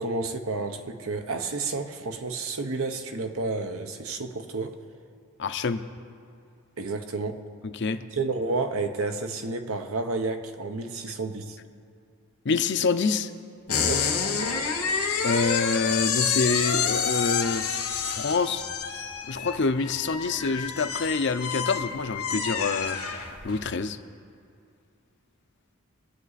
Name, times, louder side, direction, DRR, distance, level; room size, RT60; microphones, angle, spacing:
voice 1, 0.0-4.8 6.8-7.5 8.1-11.6 13.8-14.1, right 3 dB, 75° right, 7 dB, 0.9 m, -31 dB
voice 2, 5.4-5.8 7.7-8.0 12.4-13.3 15.2-17.6 18.1-18.6 19.3-23.0 23.4-24.0, left 4 dB, 55° left, 10 dB, 0.6 m, -26 dB
sound 1, 13.7-23.7, left 6 dB, 90° left, 1.8 m, -28 dB
24.0 x 8.3 x 4.1 m, 2.4 s
head